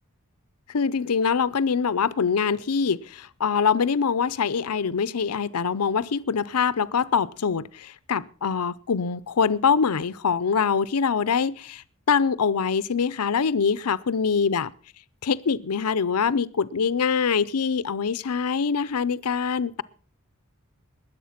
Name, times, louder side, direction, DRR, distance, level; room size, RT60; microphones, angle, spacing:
voice 1, 0.7-14.7 15.2-19.8, left 6 dB, 85° left, 0.6 m, -24 dB
21.0 x 8.0 x 5.8 m
head